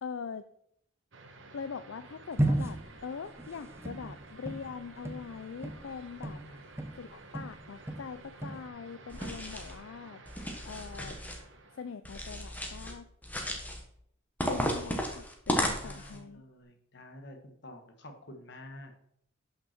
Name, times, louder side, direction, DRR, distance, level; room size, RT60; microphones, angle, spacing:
voice 1, 0.0-0.4 1.5-6.4 6.9-10.2 10.6-11.2 11.8-13.1 14.4-16.4, left 6 dB, 75° left, 12 dB, 0.4 m, -42 dB
sound 1, 1.1-12.0, right 3 dB, 65° right, 1.3 m, -52 dB
sound 2, 2.4-7.1 7.3-8.7, right 1 dB, 15° right, 0.8 m, -34 dB
voice 2, 6.3-6.6 15.8-18.9, left 1 dB, 55° left, 4 dB, 1.6 m, -49 dB
sound 3, 9.1-9.8 10.3-11.4 12.0-12.9 13.2-13.8 14.4-16.2, equal, 10° left, 1.3 m, -34 dB
12.0 x 5.9 x 4.4 m, 0.71 s
head